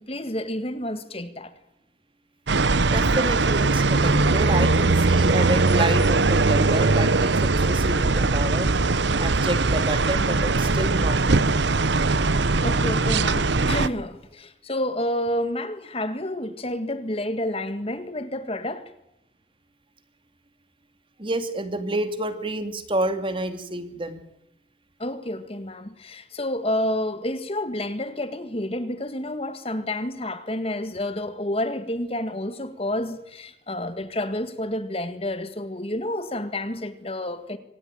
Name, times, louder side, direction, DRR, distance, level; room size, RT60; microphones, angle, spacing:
voice 1, 0.0-1.5 12.6-18.9 25.0-37.6, left 1 dB, 30° left, 1.8 m, -29 dB
sound 1, 2.5-13.9, right 3 dB, 70° right, 1.0 m, -20 dB
voice 2, 2.8-8.7 9.2-11.6 21.2-24.2, right 1 dB, 25° right, 2.5 m, -29 dB
25.5 x 18.5 x 9.1 m
head